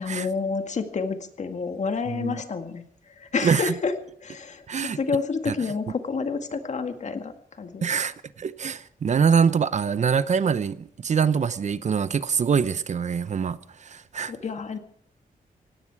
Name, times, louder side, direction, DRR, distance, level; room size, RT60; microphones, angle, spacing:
voice 1, 0.0-2.8 3.2-3.9 4.2-4.6 5.0-7.3 7.6-7.8 14.3-14.8, left 5 dB, 50° left, 7 dB, 1.9 m, -29 dB
voice 2, 2.1-2.4 3.4-3.7 4.7-5.0 5.5-5.6 7.8-14.3, right 6 dB, 50° right, 15 dB, 0.8 m, -24 dB
17.5 x 17.0 x 4.8 m, 0.67 s
wide cardioid pair, 130°, 16 cm